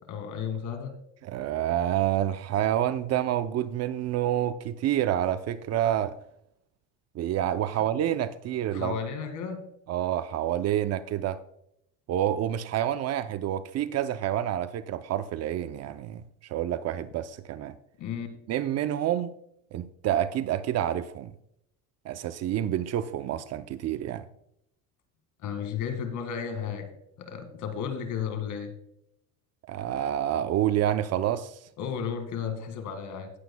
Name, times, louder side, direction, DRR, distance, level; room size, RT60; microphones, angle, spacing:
voice 1, 0.1-0.9 8.7-9.6 18.0-18.3 25.4-26.9 27.2-28.7 31.8-33.3, left 7 dB, 50° left, 2.0 m, -33 dB
voice 2, 1.2-6.2 7.1-9.0 9.9-11.4 12.1-17.7 18.5-19.3 19.7-21.3 22.0-24.3 29.7-31.6, right 11 dB, 45° right, 0.5 m, -28 dB
18.0 x 8.0 x 2.2 m
cardioid pair, 125°, 38 cm